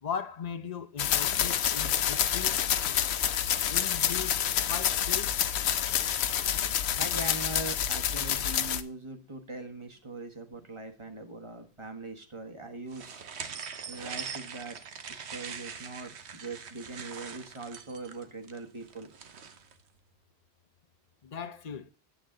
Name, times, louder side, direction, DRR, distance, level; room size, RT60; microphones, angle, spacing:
voice 1, 0.0-2.7 3.7-5.4 21.2-21.9, left 7 dB, 45° left, 0.7 m, -38 dB
sound 1, 1.0-8.8, left 9 dB, 75° left, 0.9 m, -28 dB
voice 2, 7.0-13.2 13.9-14.8 15.1-19.1, right 3 dB, 30° right, 1.4 m, -41 dB
sound 2, 12.9-19.7, right 6 dB, 90° right, 1.2 m, -42 dB
8.7 x 8.4 x 3.8 m
omnidirectional pair, 1.1 m